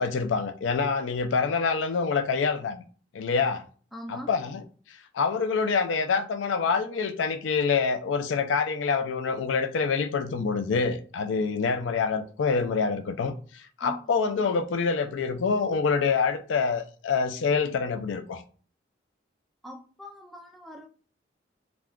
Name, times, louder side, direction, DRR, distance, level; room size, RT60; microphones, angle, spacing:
voice 1, 0.0-2.8 3.1-3.6 4.1-4.6 5.1-18.4, left 5 dB, 90° left, 0.4 m, -26 dB
voice 2, 3.9-4.3 13.8-14.3 19.6-20.9, equal, ahead, 0.3 m, -42 dB
2.4 x 2.2 x 3.5 m
head